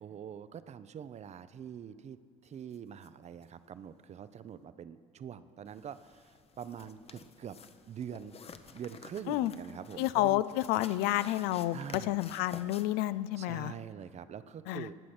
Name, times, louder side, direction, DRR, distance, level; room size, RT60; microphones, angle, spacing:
voice 1, 0.0-2.2 2.4-7.6 7.9-8.4 8.7-10.4 11.7-12.2 13.4-15.0, right 8 dB, 40° right, 14 dB, 0.6 m, -44 dB
sound 1, 2.7-2.8 3.0-3.1 3.4-3.5 5.7-12.9, left 6 dB, 35° left, 0.9 m, -51 dB
voice 2, 10.0-13.7 14.7-14.9, left 15 dB, 65° left, 16 dB, 0.4 m, -30 dB
18.0 x 6.2 x 6.0 m, 2.2 s
hypercardioid pair, 55°, 17 cm